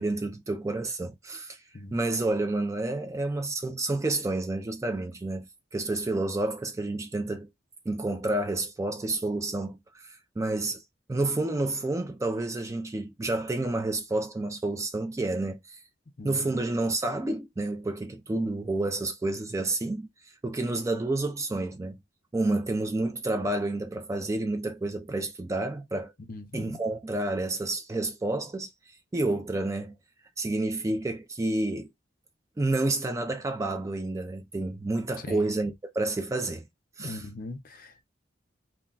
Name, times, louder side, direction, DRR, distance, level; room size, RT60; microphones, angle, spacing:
voice 1, 0.0-1.6 1.9-7.5 7.9-10.8 11.1-15.8 16.2-20.1 20.4-22.0 22.3-26.1 26.5-28.7 29.1-29.9 30.4-31.9 32.6-36.7 37.0-37.2, right 2 dB, 15° right, 0.3 m, -29 dB
voice 2, 16.2-16.6 26.3-26.8 35.3-35.5 37.0-38.0, left 2 dB, 50° left, 0.6 m, -40 dB
2.3 x 2.2 x 3.7 m
head